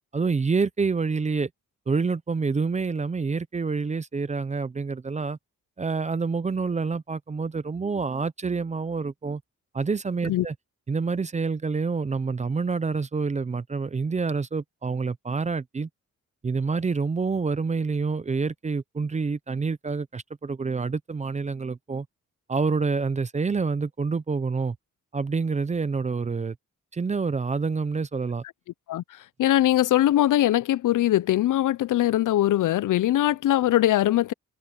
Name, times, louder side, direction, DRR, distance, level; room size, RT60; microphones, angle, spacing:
voice 1, 0.1-1.5 1.9-5.4 5.8-9.4 9.7-10.5 10.9-15.9 16.4-22.1 22.5-24.8 25.1-26.6 26.9-28.4, right 4 dB, 20° right, 0.5 m, -27 dB
voice 2, 28.9-34.3, left 13 dB, 70° left, 0.5 m, -21 dB
wide cardioid pair, 170°, 33 cm